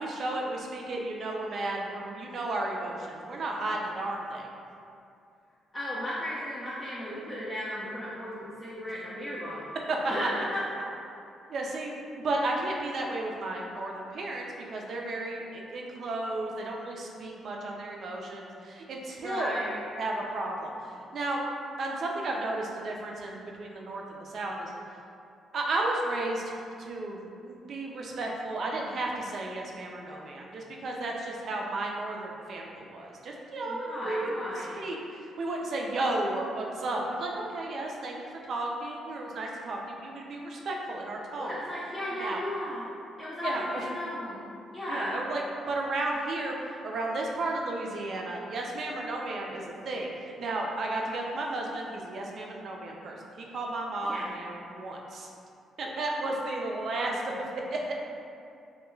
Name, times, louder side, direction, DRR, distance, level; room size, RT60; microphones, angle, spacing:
voice 1, 0.0-4.5 9.9-10.0 11.5-19.5 20.0-21.4 21.8-24.7 25.5-38.2 38.5-41.6 42.2-42.4 43.4-43.9 44.9-45.4 45.7-46.5 46.8-55.3 55.8-57.9, right 2 dB, 55° right, -1 dB, 0.4 m, -33 dB
voice 2, 5.7-9.7 10.1-10.6 19.2-19.8 33.7-34.8 41.4-42.9 43.2-44.4 44.7-45.1 54.0-54.3, left 1 dB, 15° left, -10 dB, 0.5 m, -35 dB
2.2 x 2.2 x 3.0 m, 2.5 s
cardioid pair, 90°, 0 cm